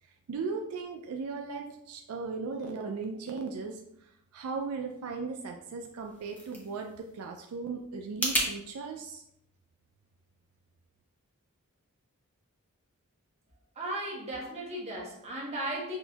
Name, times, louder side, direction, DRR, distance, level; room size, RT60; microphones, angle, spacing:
voice 1, 0.0-9.2, right 4 dB, 70° right, 3 dB, 0.4 m, -37 dB
sound 1, 5.9-8.5, equal, 5° left, 0.7 m, -34 dB
voice 2, 13.8-16.0, right 1 dB, 30° right, -3 dB, 0.9 m, -36 dB
6.0 x 2.6 x 2.3 m, 0.77 s
head